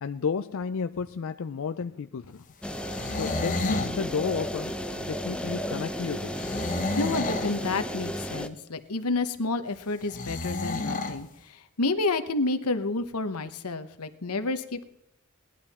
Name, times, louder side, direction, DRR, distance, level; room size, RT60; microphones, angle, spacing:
voice 1, 0.0-2.4 3.1-6.4, left 5 dB, 60° left, 10 dB, 0.4 m, -32 dB
sound 1, 2.6-8.5, equal, 5° left, 0.6 m, -33 dB
sound 2, 2.7-4.0 6.3-7.6 10.1-11.2, left 3 dB, 35° left, 1.2 m, -31 dB
voice 2, 7.0-14.8, left 3 dB, 85° left, 10 dB, 1.0 m, -30 dB
18.0 x 11.0 x 4.2 m, 0.84 s
head